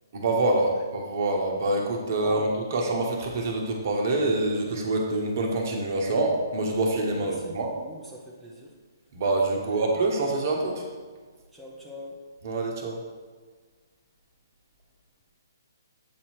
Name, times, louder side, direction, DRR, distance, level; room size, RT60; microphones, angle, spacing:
voice 1, 0.1-7.7 9.1-10.8 12.4-13.0, right 2 dB, 50° right, 1 dB, 1.1 m, -26 dB
voice 2, 2.2-2.6 7.2-8.7 9.6-9.9 11.5-12.2, equal, ahead, -5 dB, 0.7 m, -42 dB
7.7 x 2.8 x 4.5 m, 1.5 s
figure-of-eight pair, 135°, 2 cm